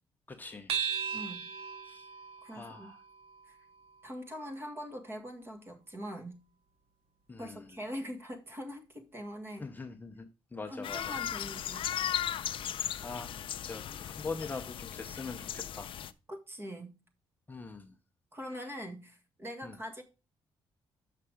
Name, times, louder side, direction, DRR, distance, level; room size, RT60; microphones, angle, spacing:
voice 1, 0.3-0.7 1.8-2.1 2.5-3.0 7.3-7.7 9.6-11.2 13.0-13.4 13.7-15.9 17.5-17.9 19.6-19.7, left 4 dB, 20° left, 0.8 m, -42 dB
sound 1, 0.7-5.5, right 7 dB, 85° right, 1.0 m, -39 dB
voice 2, 1.1-1.5 2.4-2.9 3.5-3.6 4.0-6.4 7.4-9.7 10.7-11.9 16.3-17.0 18.3-20.0, equal, 25° right, 1.8 m, -42 dB
sound 2, 10.8-16.1, left 10 dB, 65° left, 0.5 m, -37 dB
6.7 x 5.6 x 4.9 m
cardioid pair, 120°, 10 cm